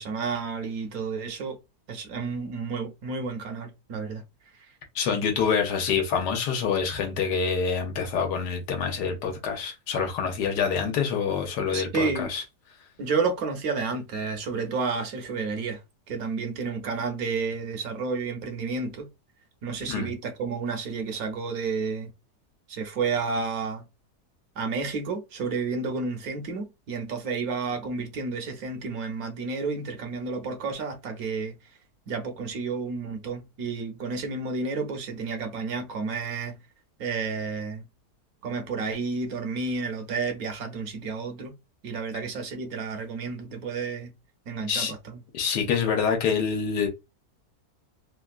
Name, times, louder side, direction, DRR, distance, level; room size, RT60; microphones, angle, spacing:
voice 1, 0.0-1.6 1.9-4.2 4.5-4.7 11.7-12.3 13.0-15.8 16.1-19.1 19.6-22.1 22.7-23.9 24.6-31.6 32.1-36.6 37.0-37.9 38.4-41.5 41.8-44.1 44.5-45.2, right 4 dB, 70° right, 1.1 m, -31 dB
voice 2, 4.9-12.4 19.8-20.1 44.7-44.9 45.3-46.9, left 6 dB, 90° left, 1.4 m, -26 dB
3.3 x 2.3 x 2.3 m
omnidirectional pair, 1.7 m